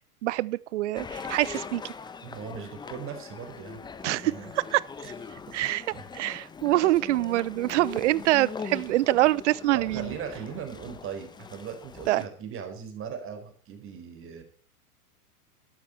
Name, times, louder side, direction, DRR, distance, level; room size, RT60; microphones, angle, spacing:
voice 1, 0.2-1.8 4.0-4.3 4.7-5.1 5.5-5.8 6.1-10.1 12.1-12.3, right 16 dB, 50° right, 0.8 m, -25 dB
sound 1, 1.0-12.3, left 5 dB, 10° left, 0.9 m, -41 dB
voice 2, 2.2-3.8 4.1-4.5 5.6-6.1 9.7-14.4, right 7 dB, 25° right, 4.4 m, -39 dB
13.0 x 12.0 x 4.4 m
hypercardioid pair, 110°, 46 cm